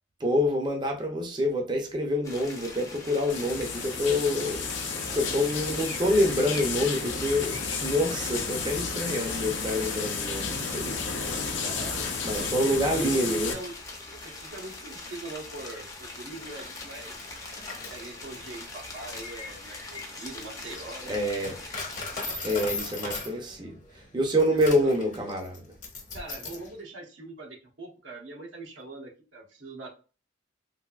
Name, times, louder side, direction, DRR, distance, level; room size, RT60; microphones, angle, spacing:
voice 1, 0.2-4.7 5.1-10.9 11.3-11.6 12.2-13.5 21.0-21.6 22.4-25.6, left 1 dB, 25° right, 0.5 m, -27 dB
sound 1, 2.2-22.2, left 2 dB, 20° left, 0.6 m, -42 dB
sound 2, 3.3-13.5, left 5 dB, 70° left, 0.6 m, -32 dB
voice 2, 5.0-5.4 11.4-12.1 12.3-13.7 14.2-17.2 17.9-21.2 24.5-24.9 26.1-29.9, right 2 dB, 90° right, 1.0 m, -41 dB
Coin (dropping), 16.2-26.7, left 3 dB, 45° left, 0.9 m, -39 dB
3.3 x 2.6 x 2.3 m
head